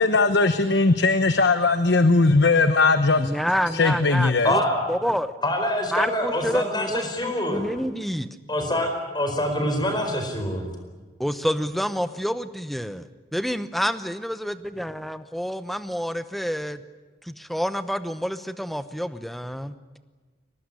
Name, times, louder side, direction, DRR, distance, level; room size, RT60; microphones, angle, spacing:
voice 1, 0.0-3.3 3.8-4.5, left 3 dB, 70° left, 10 dB, 1.0 m, -19 dB
voice 2, 3.2-4.6 4.9-5.3 5.9-8.3 11.2-16.8 17.2-19.7, equal, ahead, 12 dB, 0.8 m, -28 dB
voice 3, 4.4-4.8 5.4-7.6 8.5-10.7, left 1 dB, 25° left, 5 dB, 4.6 m, -25 dB
23.0 x 19.0 x 9.8 m, 1.3 s
head